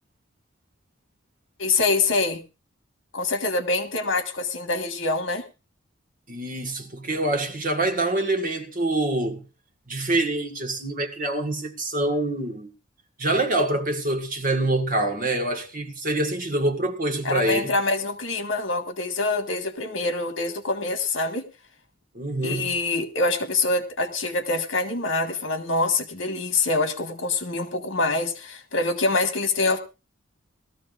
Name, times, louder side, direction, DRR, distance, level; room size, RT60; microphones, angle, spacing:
voice 1, 1.6-2.4 3.1-5.4 17.2-21.4 22.4-29.8, left 3 dB, 65° left, 1.7 m, -25 dB
voice 2, 6.3-9.4 9.9-12.7 13.2-17.7 22.1-22.7, right 2 dB, 40° right, 1.7 m, -25 dB
19.5 x 14.0 x 2.5 m
head